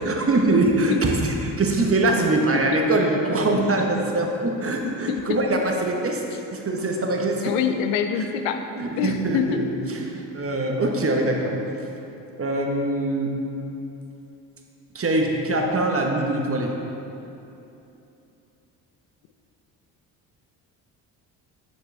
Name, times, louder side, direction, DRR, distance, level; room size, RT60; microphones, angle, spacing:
voice 1, 0.0-6.2 6.5-7.5 8.2-8.3 8.7-11.5 12.4-13.3 14.9-16.7, right 2 dB, 30° right, 1 dB, 1.0 m, -23 dB
voice 2, 4.8-5.4 7.4-8.6 9.0-9.6, left 8 dB, 70° left, 7 dB, 0.6 m, -25 dB
6.7 x 6.5 x 3.3 m, 2.8 s
hypercardioid pair, 55°, 48 cm